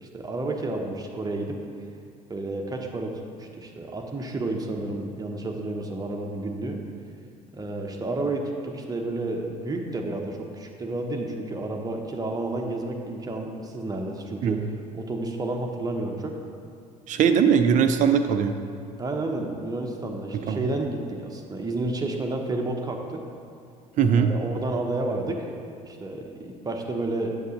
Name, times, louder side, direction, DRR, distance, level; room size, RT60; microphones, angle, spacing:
voice 1, 0.0-1.6 2.3-6.8 7.5-16.3 19.0-23.2 24.1-25.5 25.8-27.4, right 2 dB, 20° right, 2 dB, 1.0 m, -31 dB
voice 2, 17.1-18.5 20.5-20.6 24.0-24.3, right 7 dB, 40° right, 8 dB, 0.6 m, -20 dB
8.1 x 7.0 x 3.8 m, 2.3 s
figure-of-eight pair, 60°, 20 cm